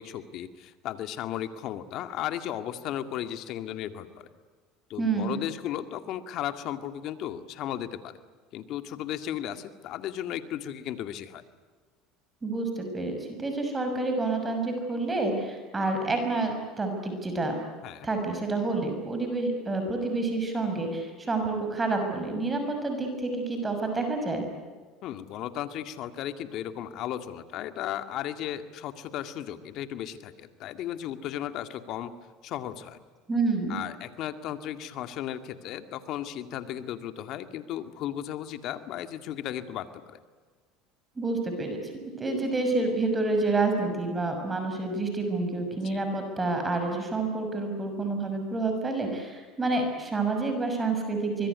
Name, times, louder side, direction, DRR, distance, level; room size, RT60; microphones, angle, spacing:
voice 1, 0.0-4.3 4.9-8.2 8.5-11.4 17.8-18.1 25.0-32.1 32.4-33.0 33.7-40.2 45.8-46.0, left 11 dB, 60° left, 10 dB, 2.1 m, -35 dB
voice 2, 5.0-5.3 12.4-17.6 18.0-24.4 33.3-33.8 41.2-41.8 42.2-51.5, right 3 dB, 20° right, 4 dB, 6.4 m, -28 dB
25.0 x 22.0 x 9.6 m, 1.4 s
supercardioid pair, 100°, 0 cm